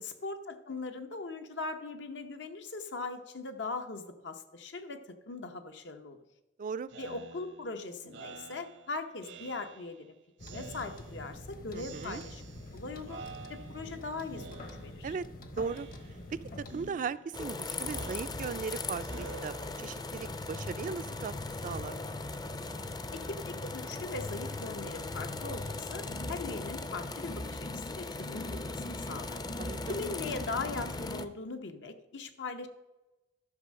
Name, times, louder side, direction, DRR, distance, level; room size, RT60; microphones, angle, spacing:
voice 1, 0.0-6.2 7.0-10.2 10.5-12.4 12.7-13.2 13.5-15.2 23.1-32.7, left 3 dB, 80° left, 7 dB, 0.8 m, -40 dB
voice 2, 6.6-6.9 11.7-12.2 15.0-15.3 15.6-15.9 16.3-21.3 21.6-22.0 29.6-30.0, right 5 dB, 45° right, 15 dB, 0.3 m, -37 dB
Speech synthesizer, 6.9-10.0 10.4-11.4 11.8-12.8 13.1-14.0 14.3-15.2 15.6-16.4 16.7-20.2, right 4 dB, 75° right, 0.8 m, -50 dB
sound 1, 10.4-16.9, left 1 dB, 50° left, 0.9 m, -46 dB
sound 2, 17.3-31.3, left 2 dB, 25° left, 0.4 m, -38 dB
12.0 x 5.4 x 6.3 m, 1.1 s
head